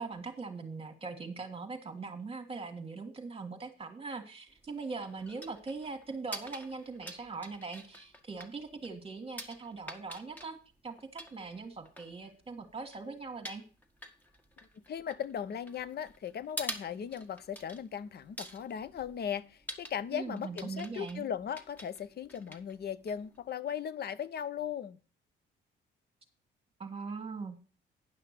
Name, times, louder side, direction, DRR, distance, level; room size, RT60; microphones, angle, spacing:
voice 1, 0.0-10.6 10.8-13.6 20.1-21.3 26.8-27.6, right 4 dB, 30° right, 1.6 m, -41 dB
sound 1, 4.5-23.5, right 1 dB, 10° left, 1.7 m, -48 dB
voice 2, 14.9-25.0, left 8 dB, 55° left, 0.8 m, -38 dB
10.0 x 5.8 x 6.6 m
cardioid pair, 90°, 20 cm